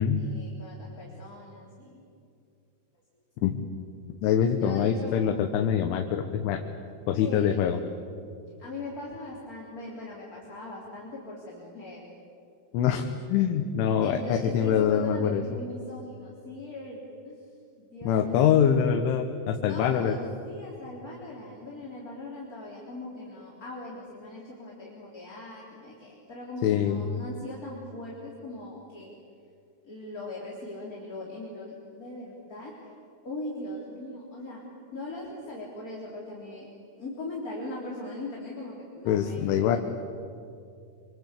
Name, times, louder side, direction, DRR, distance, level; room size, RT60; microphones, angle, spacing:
voice 1, 0.1-2.0 4.5-5.2 7.1-7.6 8.6-12.0 14.0-17.4 17.8-18.4 19.7-29.1 29.8-32.7 33.2-34.6 34.9-36.7 37.0-39.8, left 2 dB, 20° left, -4 dB, 3.4 m, -40 dB
voice 2, 4.2-6.6 7.1-7.8 12.7-15.4 18.0-20.2 26.6-27.1 39.1-39.8, left 8 dB, 85° left, 4 dB, 3.7 m, -24 dB
27.0 x 25.5 x 8.3 m, 2.5 s
omnidirectional pair, 5.4 m